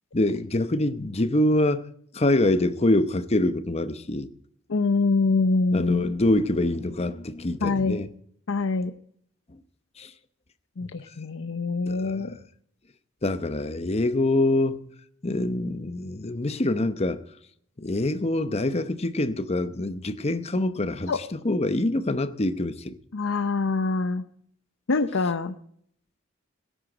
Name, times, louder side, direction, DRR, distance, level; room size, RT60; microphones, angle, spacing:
voice 1, 0.1-1.8 2.1-4.3 5.7-8.1 10.0-10.1 11.9-12.3 13.2-14.8 15.2-17.2 17.8-23.0, left 1 dB, 30° left, 0.8 m, -25 dB
voice 2, 4.7-6.0 7.6-8.0 8.5-8.9 10.8-12.3 21.1-21.2 23.1-24.2 24.9-25.5, left 3 dB, 75° left, 0.7 m, -24 dB
17.5 x 10.0 x 5.1 m
head